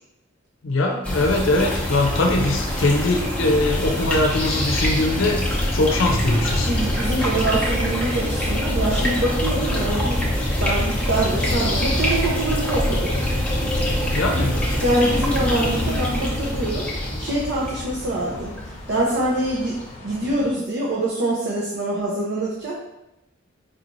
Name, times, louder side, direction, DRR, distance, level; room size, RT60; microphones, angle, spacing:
voice 1, 0.6-5.4 5.7-6.7 14.1-14.6, left 2 dB, 75° left, 2 dB, 0.6 m, -21 dB
sound 1, 1.0-19.2, equal, 5° left, 0.8 m, -24 dB
sound 2, 1.9-20.5, left 1 dB, 35° left, 0.8 m, -41 dB
voice 2, 6.7-10.2 10.6-13.1 14.8-16.9 17.2-19.7 20.0-22.8, right 1 dB, 65° right, -4 dB, 0.7 m, -24 dB
4.7 x 3.1 x 2.6 m, 0.90 s
head